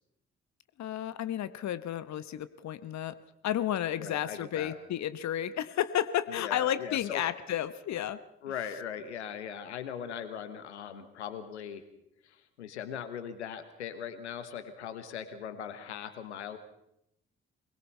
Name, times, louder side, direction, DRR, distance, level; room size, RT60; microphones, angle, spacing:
voice 1, 0.8-3.2 3.4-8.2, left 11 dB, 55° left, 14 dB, 1.1 m, -32 dB
voice 2, 4.0-4.7 6.3-7.3 8.4-11.8 12.2-16.6, left 8 dB, 90° left, 11 dB, 1.3 m, -40 dB
23.5 x 21.5 x 5.6 m, 0.78 s
hypercardioid pair, 40°, 33 cm